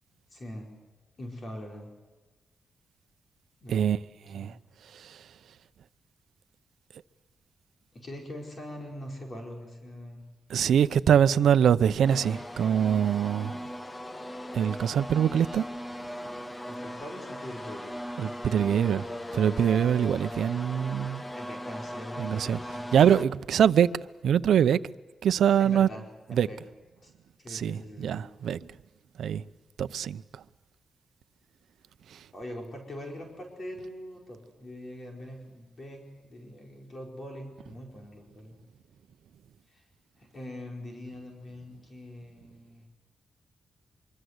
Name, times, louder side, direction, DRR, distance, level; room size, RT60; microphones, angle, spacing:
voice 1, 0.3-0.7 1.2-1.9 3.6-3.9 4.3-4.5 7.9-10.3 16.6-18.0 21.3-22.9 25.6-26.0 26.3-26.6 27.0-27.1 27.4-28.3 32.3-38.6 39.7-39.8 40.2-42.8, left 1 dB, 35° left, 4.7 m, -42 dB
voice 2, 10.5-13.6 14.5-15.6 18.2-19.1 19.3-21.2 22.2-23.9 24.2-24.8 25.2-25.9 26.3-26.5 27.5-28.6 29.2-29.4 29.8-30.2 32.1-32.2, right 9 dB, 80° right, 0.7 m, -24 dB
sound 1, 12.0-23.2, equal, 15° left, 1.1 m, -39 dB
24.5 x 24.5 x 8.1 m
wide cardioid pair, 140°, 0 cm